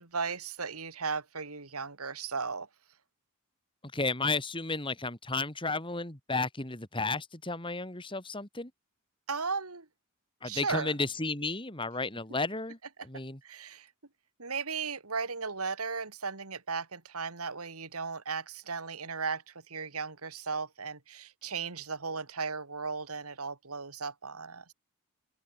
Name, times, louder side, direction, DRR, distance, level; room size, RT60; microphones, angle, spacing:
voice 1, 0.0-2.7 9.3-9.9 10.4-10.9 13.4-13.9 14.4-24.7, right 5 dB, 85° right, 2.7 m, -36 dB
voice 2, 3.9-8.7 10.4-13.4, left 3 dB, 25° left, 3.2 m, -33 dB
open air
head